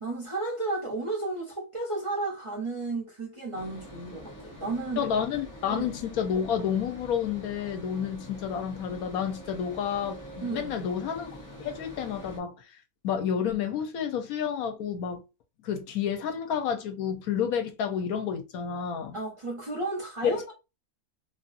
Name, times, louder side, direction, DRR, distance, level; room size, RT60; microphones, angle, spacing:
voice 1, 0.0-5.1 5.7-6.0 10.4-10.9 19.1-20.5, right 2 dB, 25° right, 0.7 m, -33 dB
sound 1, 3.5-12.4, equal, 25° left, 0.4 m, -45 dB
voice 2, 5.0-11.4 11.6-12.5 13.0-15.2 15.6-19.2, left 8 dB, 80° left, 1.1 m, -30 dB
2.9 x 2.6 x 2.5 m
omnidirectional pair, 1.5 m